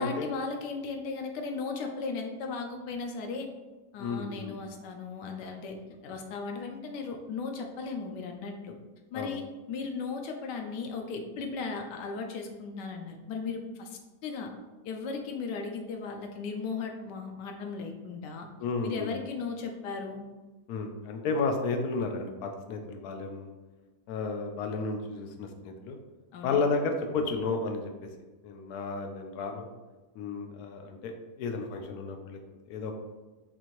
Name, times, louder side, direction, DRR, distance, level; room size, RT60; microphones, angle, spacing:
voice 1, 0.0-3.5 3.9-5.8 6.0-8.7 9.1-14.5 14.8-18.5 18.8-20.3 26.3-26.6, left 4 dB, 90° left, 3 dB, 1.2 m, -36 dB
voice 2, 4.0-4.6 9.1-9.3 18.6-19.1 20.7-23.5 24.1-26.0 26.4-27.9 28.4-29.7 30.2-32.4 32.7-33.0, left 4 dB, 70° left, 4 dB, 1.0 m, -32 dB
4.3 x 2.7 x 2.9 m, 1.2 s
omnidirectional pair, 1.8 m